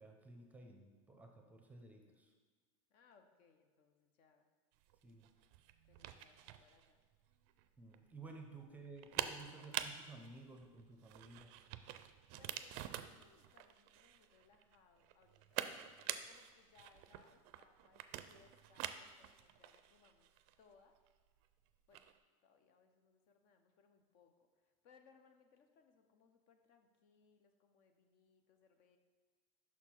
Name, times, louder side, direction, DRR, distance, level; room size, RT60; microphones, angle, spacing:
voice 1, 0.0-2.3 5.0-5.3 7.8-11.5, right 3 dB, 10° right, 3 dB, 0.7 m, -55 dB
voice 2, 2.9-4.5 5.9-7.0 12.4-15.6 16.0-20.3 20.6-21.0 21.9-22.1 22.4-29.0, left 5 dB, 55° left, 6 dB, 0.7 m, -69 dB
sound 1, 4.8-22.2, right 12 dB, 55° right, 0.4 m, -47 dB
5.9 x 4.4 x 4.4 m, 1.5 s
supercardioid pair, 125°, 17 cm